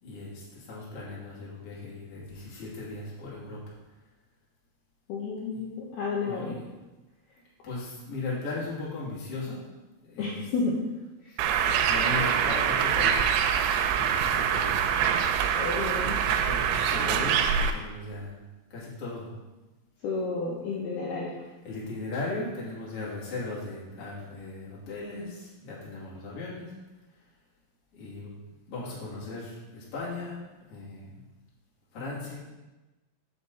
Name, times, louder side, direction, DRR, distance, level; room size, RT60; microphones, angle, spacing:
voice 1, 0.0-3.7 5.5-5.6 6.2-6.7 7.6-9.6 10.0-10.5 11.3-13.5 13.9-14.9 16.0-17.4 17.7-18.3 18.7-19.3 21.6-26.7 27.9-28.3 28.7-30.4 30.7-31.1 31.9-32.3, left 3 dB, 35° left, -7 dB, 2.7 m, -37 dB
voice 2, 5.1-6.6 10.2-10.7 15.5-16.5 20.0-21.4, left 4 dB, 85° left, -3 dB, 2.2 m, -31 dB
Bird, 11.4-17.7, right 8 dB, 90° right, 3.4 m, -25 dB
8.4 x 7.3 x 4.1 m, 1.1 s
omnidirectional pair, 6.0 m